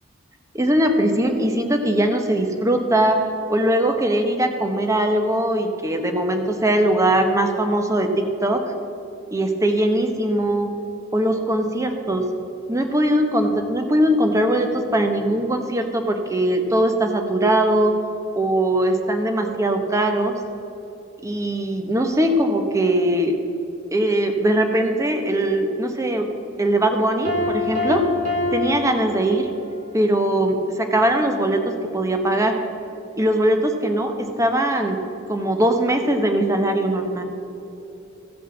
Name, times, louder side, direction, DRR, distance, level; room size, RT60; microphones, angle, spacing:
voice 1, 0.5-8.6 9.3-10.7 11.1-12.2 12.7-17.9 18.3-20.4 21.2-23.4 23.9-26.3 26.6-28.1 28.5-29.5 29.9-32.6 33.2-35.0 35.3-37.2, right 1 dB, 15° right, 5 dB, 0.9 m, -20 dB
Piano, 27.2-29.8, left 2 dB, 35° right, 1.5 m, -25 dB
14.5 x 5.4 x 7.1 m, 2.9 s
head